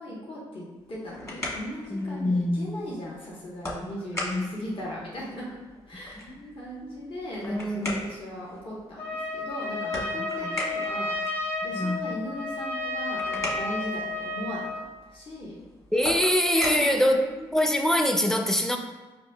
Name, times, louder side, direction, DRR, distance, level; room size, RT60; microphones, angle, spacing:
voice 1, 0.0-5.5 5.9-11.1 11.6-14.7 15.0-15.6 16.5-17.1, left 1 dB, 50° left, -6 dB, 1.1 m, -38 dB
sound 1, 0.8-17.8, left 1 dB, 25° left, 1.3 m, -40 dB
voice 2, 1.9-2.9 4.2-4.5 6.2-6.5 6.8-7.1 7.4-8.0 10.2-10.6 11.7-12.1 15.9-17.2 17.5-18.8, left 1 dB, 5° left, 4 dB, 0.5 m, -25 dB
Trumpet, 9.0-14.9, left 2 dB, 75° left, 1.0 m, -32 dB
5.2 x 2.6 x 2.2 m, 1.2 s
supercardioid pair, 60°, 12 cm